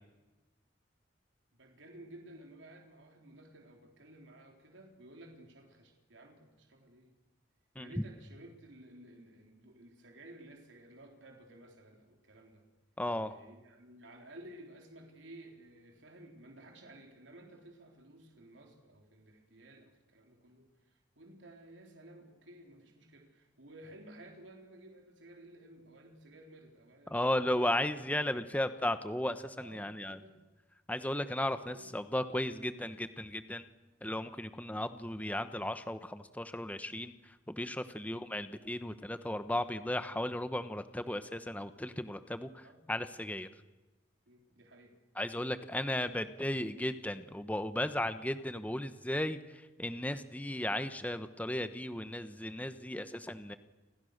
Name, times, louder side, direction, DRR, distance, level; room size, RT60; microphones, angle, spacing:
voice 1, 1.5-7.1 7.8-12.6 13.2-27.7 29.6-30.4 31.7-32.0 38.0-38.1 42.6-42.8 44.3-44.9, right 1 dB, 80° right, 2 dB, 4.0 m, -55 dB
voice 2, 13.0-13.3 27.1-30.2 30.9-33.6 34.0-37.1 37.5-43.5 45.2-49.4 49.8-53.6, left 1 dB, 10° left, 11 dB, 1.1 m, -35 dB
30.0 x 25.5 x 6.7 m, 1.1 s
head